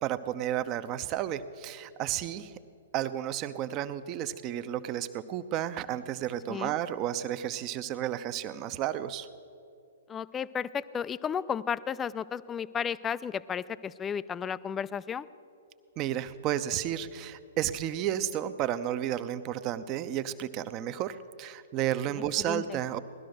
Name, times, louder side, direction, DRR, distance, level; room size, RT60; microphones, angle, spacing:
voice 1, 0.0-2.5 2.9-9.3 16.0-23.0, right 11 dB, 30° right, 12 dB, 0.7 m, -32 dB
voice 2, 10.1-15.3 22.5-22.8, left 7 dB, 15° left, 17 dB, 0.4 m, -33 dB
18.0 x 12.0 x 6.5 m, 2.6 s
figure-of-eight pair, 120°, 0 cm